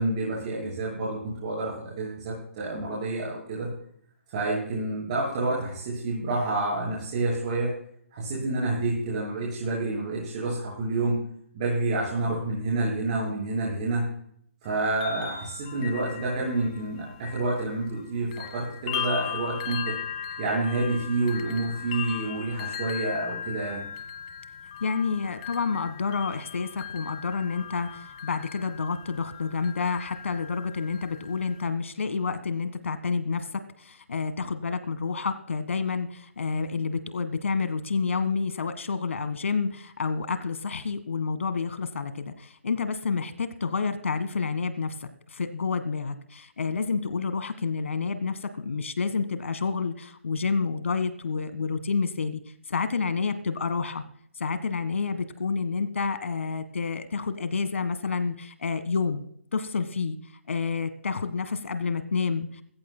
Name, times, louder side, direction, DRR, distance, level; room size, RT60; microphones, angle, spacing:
voice 1, 0.0-3.7 4.3-7.7 8.1-11.2 11.5-14.0 14.6-19.9 20.4-23.8, right 2 dB, 30° right, -5 dB, 7.1 m, -28 dB
sound 1, 14.7-18.0 18.3-31.7, left 9 dB, 25° left, 1.4 m, -38 dB
voice 2, 24.8-52.4 52.7-54.0 54.4-59.2 59.5-60.2 60.5-62.6, left 5 dB, 70° left, 11 dB, 1.6 m, -29 dB
22.5 x 15.0 x 2.2 m, 0.65 s
hypercardioid pair, 160°, 7 cm